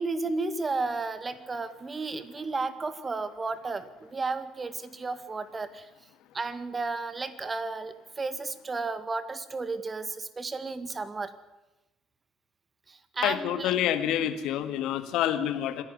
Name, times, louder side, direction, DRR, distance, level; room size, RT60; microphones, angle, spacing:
voice 1, 0.0-5.9 6.3-11.3 12.9-13.7, right 3 dB, 25° right, 13 dB, 1.9 m, -33 dB
voice 2, 13.2-15.8, left 11 dB, 60° left, 10 dB, 1.8 m, -27 dB
26.0 x 11.5 x 9.6 m, 0.99 s
figure-of-eight pair, 55°, 0 cm